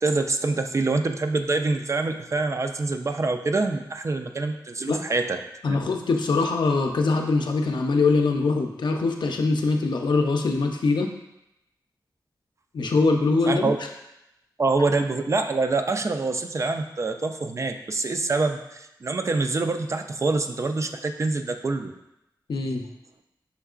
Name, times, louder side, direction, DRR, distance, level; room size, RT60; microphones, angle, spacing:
voice 1, 0.0-5.4 5.7-5.8 13.5-13.8 14.6-21.9, right 3 dB, 40° right, 6 dB, 0.3 m, -25 dB
voice 2, 5.6-11.1 12.7-13.7 22.5-22.9, left 3 dB, 80° left, 3 dB, 0.5 m, -23 dB
5.7 x 3.6 x 2.4 m, 0.86 s
wide cardioid pair, 105°, 8 cm